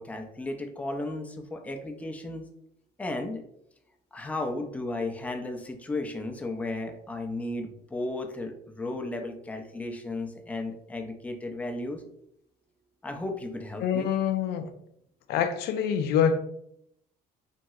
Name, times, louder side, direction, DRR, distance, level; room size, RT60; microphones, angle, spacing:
voice 1, 0.0-2.5 3.0-3.4 4.1-12.0 13.0-14.1, left 2 dB, 10° left, 4 dB, 0.4 m, -34 dB
voice 2, 13.8-14.7 15.3-16.4, left 8 dB, 75° left, 9 dB, 0.4 m, -25 dB
3.0 x 2.6 x 2.3 m, 0.73 s
cardioid pair, 110°, 17 cm